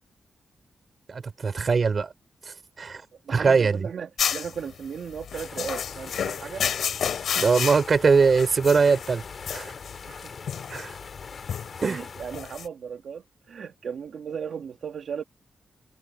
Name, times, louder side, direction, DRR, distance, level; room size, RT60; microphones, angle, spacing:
voice 1, 1.1-2.1 2.5-3.0 3.3-3.9 7.4-9.2 9.5-9.7 10.7-11.0 11.8-12.0, right 5 dB, 40° right, 4.2 m, -22 dB
voice 2, 3.3-6.6 10.1-10.4 11.8-15.2, right 7 dB, 65° right, 1.9 m, -36 dB
sound 1, 4.2-12.7, left 8 dB, 75° left, 3.9 m, -31 dB
sound 2, 5.3-12.4, left 5 dB, 45° left, 5.0 m, -42 dB
wide cardioid pair, 140°, 0 cm